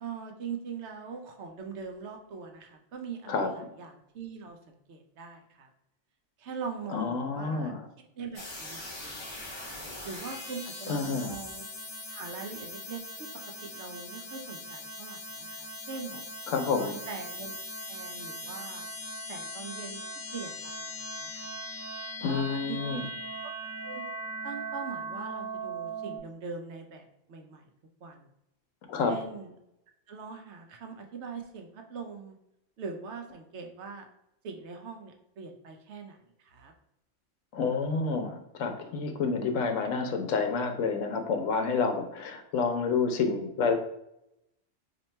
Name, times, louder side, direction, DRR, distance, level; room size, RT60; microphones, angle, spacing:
voice 1, 0.0-5.7 6.4-7.8 8.2-9.5 10.0-11.7 12.1-13.0 13.6-16.1 16.7-18.8 19.3-20.0 20.3-21.5 22.2-23.0 23.4-23.5 23.8-24.0 24.4-27.7 28.0-28.3 29.1-29.5 30.1-32.4 32.8-34.1 34.4-36.7, right 5 dB, 70° right, 4 dB, 0.8 m, -42 dB
voice 2, 6.9-7.9 10.9-11.4 16.5-16.9 22.2-23.0 28.9-29.1 37.5-43.7, left 5 dB, 85° left, 5 dB, 0.9 m, -29 dB
sound 1, 8.3-26.2, equal, 30° left, 0.5 m, -40 dB
2.9 x 2.5 x 4.2 m, 0.81 s
omnidirectional pair, 1.3 m